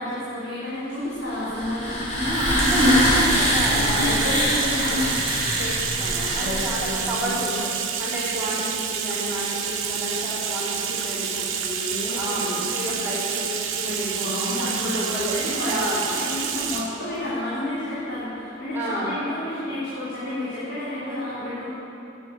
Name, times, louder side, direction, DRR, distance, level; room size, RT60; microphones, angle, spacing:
voice 1, 0.0-2.0 3.7-4.4 6.4-7.3 11.9-12.7 14.2-15.8 16.1-21.7, left 1 dB, 60° left, -11 dB, 3.5 m, -31 dB
sound 1, 1.3-7.1, left 1 dB, 35° left, 2.9 m, -23 dB
voice 2, 2.2-5.2 5.6-15.3 15.7-16.0 18.7-19.1, right 1 dB, 10° right, -11 dB, 3.4 m, -30 dB
Bathtub (filling or washing), 2.3-16.9, right 7 dB, 70° right, 1.1 m, -29 dB
10.0 x 8.5 x 8.6 m, 2.8 s
head